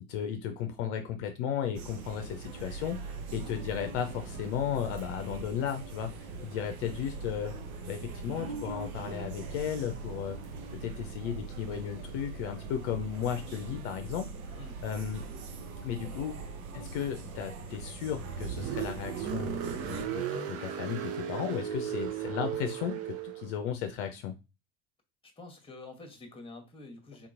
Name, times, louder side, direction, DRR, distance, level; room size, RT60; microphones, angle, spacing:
voice 1, 0.1-6.1 6.4-7.5 7.9-10.4 10.7-14.3 14.8-15.2 15.8-16.4 16.7-23.0 23.2-24.3, left 8 dB, 60° left, 6 dB, 0.6 m, -35 dB
sound 1, 1.7-20.0, right 4 dB, 80° right, 0.7 m, -42 dB
Car, 18.0-23.5, right 9 dB, 35° right, 0.6 m, -36 dB
voice 2, 25.4-27.3, left 3 dB, 15° left, 4 dB, 1.0 m, -48 dB
3.6 x 2.9 x 2.5 m, 0.26 s
figure-of-eight pair, 65°, 42 cm